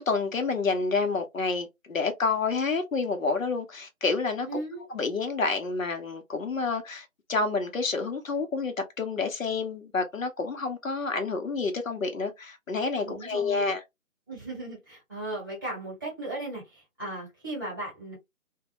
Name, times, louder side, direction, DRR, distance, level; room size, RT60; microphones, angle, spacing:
voice 1, 0.0-4.5 4.9-13.8, left 4 dB, 70° left, 0.7 m, -29 dB
voice 2, 4.5-4.8 13.0-13.7 14.3-18.2, right 2 dB, 15° right, 0.9 m, -37 dB
2.2 x 2.0 x 2.7 m
figure-of-eight pair, 155°, 42 cm